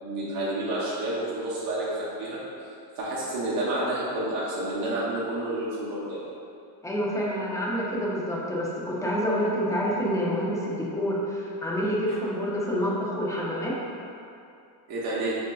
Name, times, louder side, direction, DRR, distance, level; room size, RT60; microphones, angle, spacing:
voice 1, 0.0-2.4 3.0-6.2 14.9-15.4, right 1 dB, 50° right, -8 dB, 0.8 m, -29 dB
voice 2, 6.8-13.8, equal, 10° left, -6 dB, 0.3 m, -27 dB
5.0 x 2.6 x 2.2 m, 2.6 s
cardioid pair, 130°, 45 cm